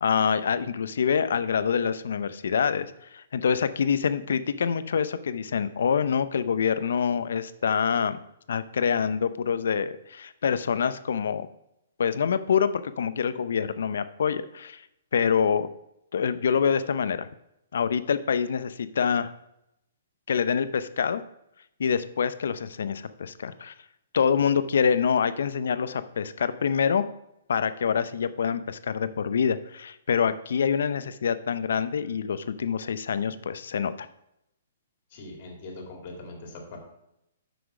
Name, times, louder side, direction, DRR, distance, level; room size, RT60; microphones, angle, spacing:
voice 1, 0.0-8.2 8.5-11.5 12.0-14.8 15.1-15.7 16.1-17.3 17.7-19.3 20.3-21.2 21.8-23.7 24.1-27.0 27.5-34.1, left 7 dB, 75° left, 13 dB, 0.6 m, -26 dB
voice 2, 35.1-36.8, left 2 dB, 40° left, 1 dB, 2.4 m, -41 dB
8.0 x 6.1 x 4.9 m, 0.82 s
hypercardioid pair, 165°, 0 cm